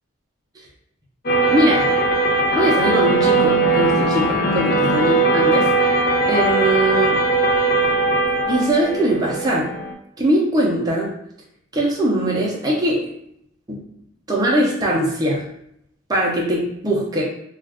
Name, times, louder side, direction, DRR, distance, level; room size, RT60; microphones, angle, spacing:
sound 1, 1.3-9.9, right 2 dB, 50° left, 0.5 m, -19 dB
voice 1, 1.5-1.8 2.6-5.7 6.3-7.2 8.4-9.7 10.2-11.1 11.7-13.0 13.7-13.8 14.3-15.4 16.1-17.2, right 1 dB, 20° right, -3 dB, 0.5 m, -20 dB
2.3 x 2.2 x 3.4 m, 0.73 s
head